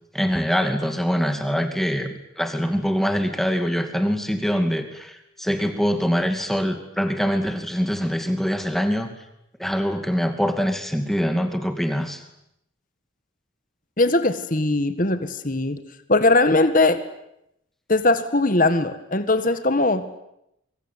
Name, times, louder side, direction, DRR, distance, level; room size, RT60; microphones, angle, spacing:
voice 1, 0.1-9.1 9.6-12.2, equal, ahead, 6 dB, 2.4 m, -24 dB
voice 2, 14.0-15.8 16.1-17.0 17.9-20.0, left 2 dB, 40° left, 10 dB, 1.8 m, -20 dB
24.5 x 24.5 x 9.3 m, 0.81 s
head